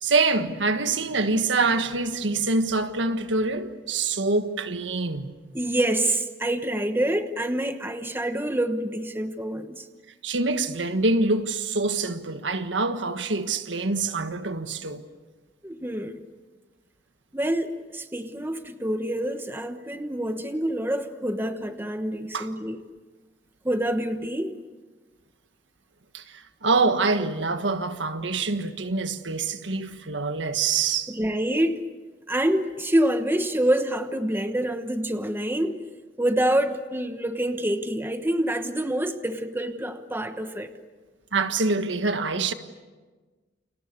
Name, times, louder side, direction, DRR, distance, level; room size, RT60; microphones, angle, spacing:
voice 1, 0.0-5.3 10.2-15.0 22.3-22.5 26.1-31.1 41.3-42.5, right 3 dB, 85° right, 1.6 m, -25 dB
voice 2, 5.5-9.9 15.6-16.2 17.3-22.8 23.6-24.6 31.1-31.8 32.3-35.8 36.2-40.7, right 1 dB, 10° right, 1.2 m, -26 dB
29.5 x 28.0 x 6.8 m
head